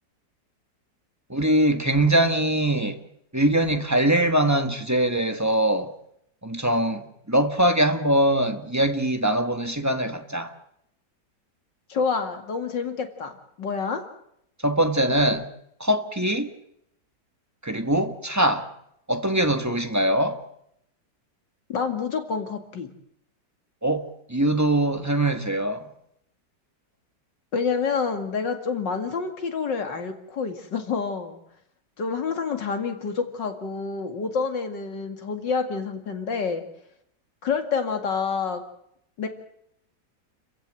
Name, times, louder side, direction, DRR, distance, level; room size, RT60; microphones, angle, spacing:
voice 1, 1.3-3.0 3.3-5.9 6.4-10.5 14.6-15.5 15.8-16.5 17.6-18.7 19.1-20.4 23.8-25.9, right 1 dB, 10° right, 1.5 m, -22 dB
voice 2, 11.9-14.0 21.7-22.9 27.5-31.4 32.0-36.6 37.4-38.6 39.2-39.3, left 5 dB, 90° left, 2.9 m, -28 dB
30.0 x 15.5 x 7.8 m
omnidirectional pair, 1.9 m